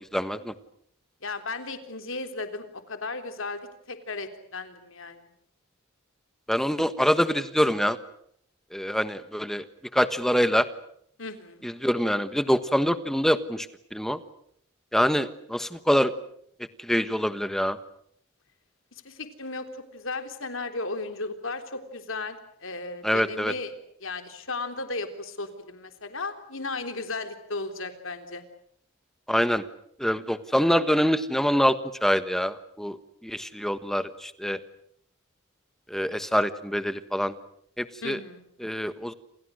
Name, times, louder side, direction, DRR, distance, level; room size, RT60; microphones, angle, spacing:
voice 1, 0.1-0.5 6.5-8.0 8.7-9.6 9.9-10.7 11.6-13.7 13.9-14.2 14.9-16.1 16.8-17.8 23.0-23.5 29.3-29.6 30.0-33.0 33.2-34.6 35.9-37.3 37.8-38.2 38.6-39.1, equal, ahead, 11 dB, 1.4 m, -25 dB
voice 2, 1.2-5.3 11.2-11.7 18.9-23.7 24.0-28.4 38.0-38.5, left 3 dB, 65° left, 8 dB, 3.6 m, -35 dB
28.5 x 28.0 x 6.5 m, 0.69 s
head